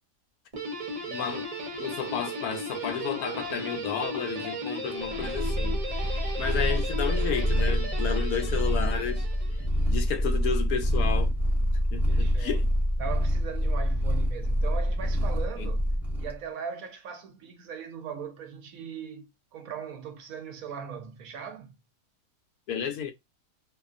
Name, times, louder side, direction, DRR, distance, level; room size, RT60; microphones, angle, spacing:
Guitar, 0.5-9.9, right 1 dB, 35° right, 0.5 m, -36 dB
voice 1, 1.1-1.5 1.8-5.8 6.4-9.3 9.9-11.3 11.9-12.6 15.6-15.7 22.7-23.1, left 7 dB, 75° left, 1.0 m, -32 dB
Purr, 5.1-16.4, equal, ahead, 0.8 m, -26 dB
voice 2, 12.1-12.6 13.0-15.9 16.2-21.7, right 7 dB, 70° right, 1.0 m, -39 dB
2.7 x 2.4 x 2.4 m
omnidirectional pair, 1.7 m